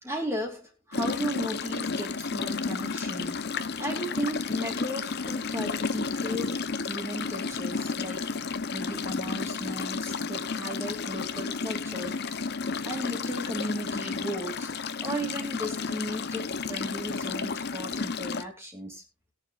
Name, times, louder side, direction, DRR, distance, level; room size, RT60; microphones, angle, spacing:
voice 1, 0.0-3.5 3.8-6.6 6.9-8.3 8.7-12.2 12.8-14.7 15.0-19.0, equal, 10° right, 0 dB, 2.7 m, -35 dB
sound 1, 0.9-18.4, left 4 dB, 50° left, 0.8 m, -32 dB
21.0 x 7.4 x 2.5 m, 0.25 s
head